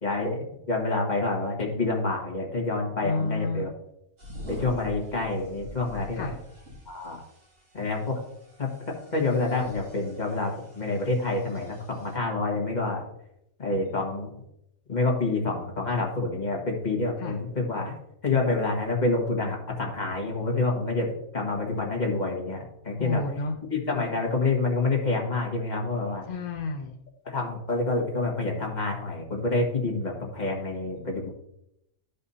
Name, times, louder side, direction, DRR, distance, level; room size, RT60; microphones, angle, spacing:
voice 1, 0.0-3.7 4.5-6.3 6.9-7.2 7.7-8.2 8.6-13.0 13.6-14.3 14.9-17.9 18.2-23.2 23.7-26.3 27.2-31.3, left 3 dB, 30° left, -1 dB, 1.8 m, -28 dB
voice 2, 3.0-3.7 6.1-6.4 17.2-17.4 23.0-23.6 26.3-26.9, left 3 dB, 50° left, 4 dB, 0.5 m, -30 dB
sound 1, 4.2-12.2, left 1 dB, 55° right, 2.5 m, -45 dB
13.0 x 5.4 x 2.8 m, 0.81 s
omnidirectional pair, 1.4 m